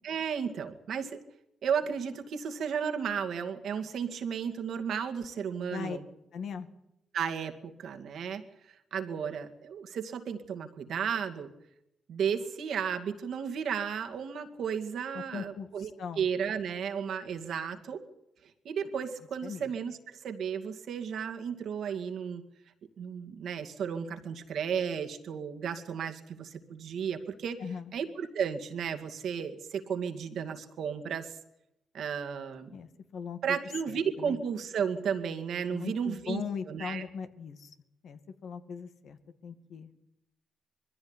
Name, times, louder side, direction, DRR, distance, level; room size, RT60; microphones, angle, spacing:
voice 1, 0.0-1.2 1.6-6.0 7.1-11.5 12.1-15.9 16.2-18.0 18.6-22.4 23.0-27.6 27.9-31.4 31.9-32.7 33.4-36.4 36.7-37.0, right 7 dB, 75° right, 6 dB, 2.2 m, -34 dB
voice 2, 5.6-6.0 6.3-6.7 15.1-16.3 19.4-19.7 27.6-27.9 32.7-33.6 33.9-34.4 35.7-37.8 38.0-39.9, left 6 dB, 75° left, 8 dB, 2.1 m, -39 dB
21.5 x 15.0 x 9.9 m, 0.85 s
supercardioid pair, 55°, 0 cm